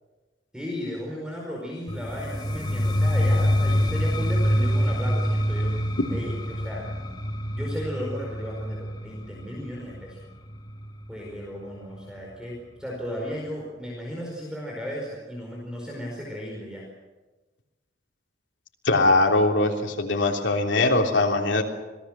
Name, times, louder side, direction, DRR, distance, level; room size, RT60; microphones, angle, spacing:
voice 1, 0.5-5.7 6.1-6.9 7.5-10.2 11.1-16.8, equal, 5° right, -2 dB, 4.8 m, -35 dB
sound 1, 1.9-11.7, equal, 25° left, 2.0 m, -26 dB
voice 2, 18.8-21.6, left 2 dB, 80° left, 2 dB, 3.4 m, -21 dB
26.5 x 19.0 x 7.5 m, 1.2 s
head